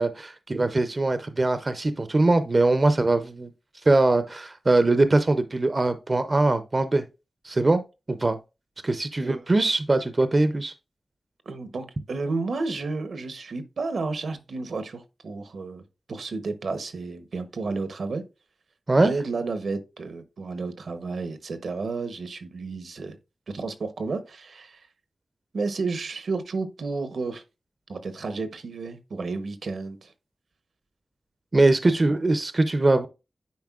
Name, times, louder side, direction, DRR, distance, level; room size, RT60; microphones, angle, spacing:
voice 1, 0.0-3.5 3.9-7.0 7.4-7.8 8.1-8.4 8.8-10.7 18.9-19.1 31.5-33.1, right 2 dB, 30° right, 0.5 m, -22 dB
voice 2, 11.5-15.8 16.1-18.2 19.0-23.2 23.5-24.9 25.5-27.4 27.9-30.1, right 3 dB, 80° right, 0.8 m, -32 dB
9.4 x 4.3 x 2.3 m
wide cardioid pair, 115°, 0 cm